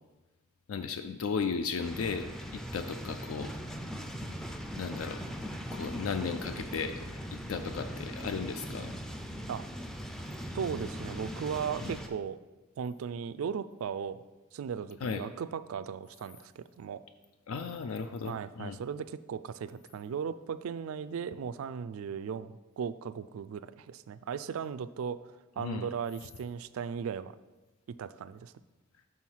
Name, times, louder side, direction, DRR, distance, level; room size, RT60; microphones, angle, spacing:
voice 1, 0.7-2.3 2.5-3.5 4.8-5.2 5.7-8.9 11.8-11.9 15.0-15.2 17.5-18.8 25.6-25.9, left 5 dB, 70° left, 8 dB, 0.4 m, -35 dB
sound 1, 1.8-12.1, equal, ahead, 0.4 m, -40 dB
voice 2, 10.5-12.4 12.8-14.2 14.5-17.0 18.2-25.2 25.6-27.3 28.0-28.5, right 7 dB, 70° right, 14 dB, 0.3 m, -37 dB
6.2 x 5.6 x 4.5 m, 1.1 s
head